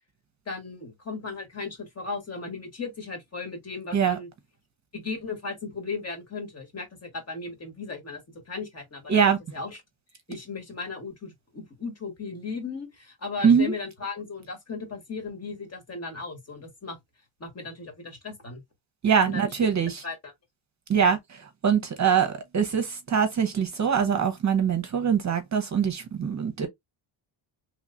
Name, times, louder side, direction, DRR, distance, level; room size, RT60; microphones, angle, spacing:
voice 1, 0.5-4.3 4.9-8.2 8.5-9.8 10.3-17.0 17.4-18.6 19.3-19.7 20.0-20.3, left 4 dB, 30° left, 1.5 m, -36 dB
voice 2, 13.4-13.7 19.0-19.9 20.9-21.2 21.6-26.7, right 7 dB, 35° right, 0.9 m, -23 dB
3.2 x 3.0 x 2.5 m
cardioid pair, 110°, 50 cm